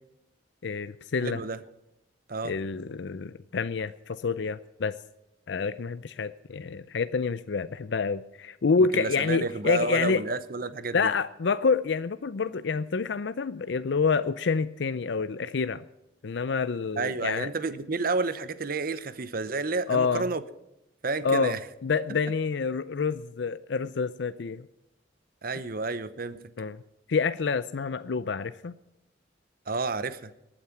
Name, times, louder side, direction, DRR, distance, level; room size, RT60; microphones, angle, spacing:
voice 1, 0.6-1.4 2.4-5.0 5.5-10.2 10.9-15.8 16.2-17.5 19.9-20.3 21.2-21.6 21.8-24.7 26.6-26.8 27.1-28.7, left 5 dB, 65° left, 14 dB, 0.5 m, -28 dB
voice 2, 1.2-1.6 2.3-2.6 8.9-11.1 17.0-20.4 21.0-21.6 25.4-26.4 29.7-30.3, right 3 dB, 50° right, 14 dB, 0.8 m, -30 dB
19.0 x 8.9 x 6.0 m, 0.91 s
head